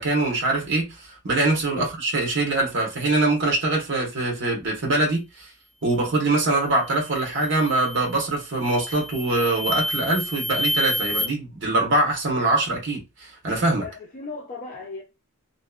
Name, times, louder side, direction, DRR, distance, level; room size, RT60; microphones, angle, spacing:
voice 1, 0.0-5.5 5.8-13.9, right 2 dB, 55° right, 1.1 m, -23 dB
sound 1, 6.8-7.1 7.6-8.1 8.6-11.3, left 1 dB, 65° left, 0.8 m, -29 dB
voice 2, 13.8-15.0, left 3 dB, 40° left, 0.5 m, -36 dB
2.8 x 2.2 x 2.4 m
head